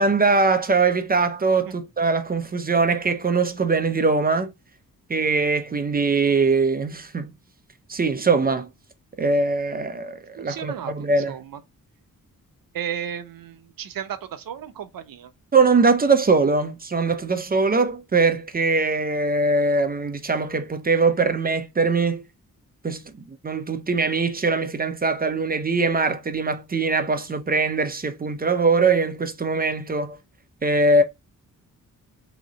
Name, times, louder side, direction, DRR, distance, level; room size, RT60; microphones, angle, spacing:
voice 1, 0.0-4.5 5.1-7.3 7.9-8.7 9.2-11.4 15.5-22.2 22.8-30.2 30.6-31.0, right 3 dB, 25° right, 0.5 m, -22 dB
voice 2, 10.4-11.6 12.7-15.3, right 9 dB, 75° right, 0.7 m, -34 dB
3.7 x 3.1 x 3.8 m
wide cardioid pair, 145°, 35 cm